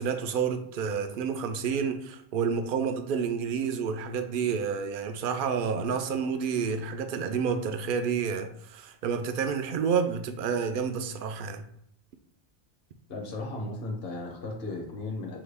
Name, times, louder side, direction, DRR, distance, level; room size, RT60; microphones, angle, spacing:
voice 1, 0.0-11.6, right 6 dB, 60° right, 0.6 m, -29 dB
voice 2, 13.1-15.4, left 2 dB, 60° left, 1.1 m, -35 dB
5.6 x 2.3 x 3.4 m
omnidirectional pair, 1.2 m